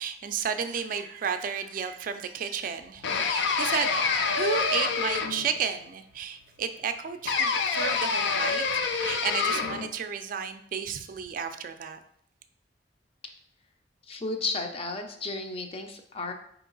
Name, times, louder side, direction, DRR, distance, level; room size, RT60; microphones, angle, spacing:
voice 1, 0.0-3.9 4.3-12.0, right 6 dB, 50° right, 8 dB, 0.3 m, -32 dB
sound 1, 3.0-5.6 7.3-9.9, left 5 dB, 80° left, 0.5 m, -27 dB
voice 2, 14.0-16.3, left 3 dB, 35° left, 5 dB, 0.5 m, -33 dB
4.4 x 2.9 x 3.9 m, 0.68 s
head